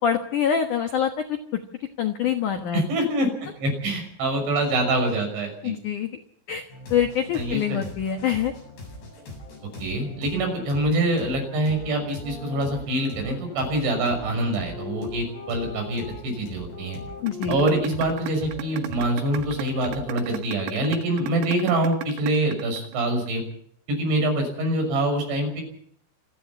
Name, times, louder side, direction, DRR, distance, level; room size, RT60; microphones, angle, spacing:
voice 1, 0.0-1.4 2.0-2.8 5.6-6.1 6.5-6.6 6.9-8.5 17.2-17.6, left 8 dB, 80° left, 6 dB, 1.8 m, -25 dB
voice 2, 2.7-5.8 7.3-7.9 9.8-17.0 17.5-23.4 23.9-25.6, right 1 dB, 65° right, 4 dB, 8.3 m, -25 dB
sound 1, 6.7-20.3, left 1 dB, 55° left, 10.0 m, -42 dB
sound 2, 11.6-16.2 16.7-21.7, left 5 dB, 25° left, 4.8 m, -41 dB
sound 3, 17.3-23.3, right 14 dB, 85° right, 3.8 m, -35 dB
27.5 x 10.0 x 9.8 m, 0.64 s
omnidirectional pair, 5.8 m